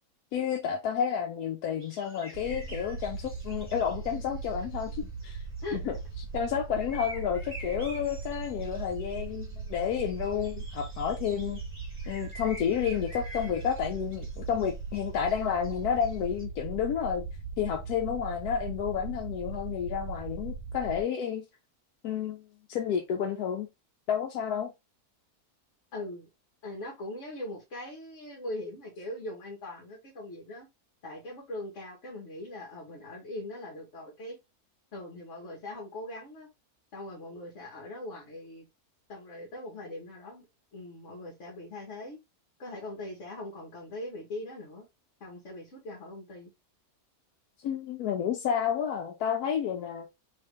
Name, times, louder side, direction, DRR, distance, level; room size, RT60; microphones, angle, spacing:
voice 1, 0.3-5.4 5.7-6.0 6.3-11.6 12.1-17.2 17.6-21.5 22.0-23.7 24.1-24.7 47.6-50.1, left 8 dB, 80° left, 1.1 m, -30 dB
sound 1, 1.8-6.1 6.7-16.4, right 1 dB, 20° right, 1.8 m, -49 dB
sound 2, 2.3-21.0, right 4 dB, 75° right, 1.0 m, -39 dB
voice 2, 25.9-26.3 26.6-30.7 31.0-34.4 34.9-36.5 36.9-38.7 39.1-40.4 40.7-42.2 42.6-44.9 45.2-46.5, left 1 dB, 55° left, 1.4 m, -41 dB
3.3 x 2.9 x 3.1 m
omnidirectional pair, 1.6 m